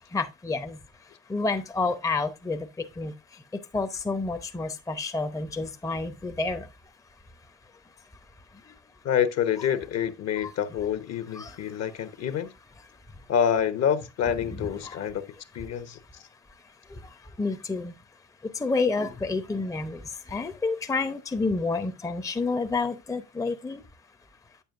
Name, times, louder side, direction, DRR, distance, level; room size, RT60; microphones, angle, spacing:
voice 1, 0.1-0.8 1.3-2.7 3.0-3.1 3.7-6.7 11.4-11.5 14.8-15.0 17.4-17.9 18.6-20.0 20.3-23.8, left 3 dB, 10° left, 0.8 m, -29 dB
voice 2, 9.0-12.5 13.3-15.2 15.5-16.2, left 8 dB, 45° left, 1.1 m, -27 dB
8.8 x 7.0 x 2.5 m
hypercardioid pair, 65°, 37 cm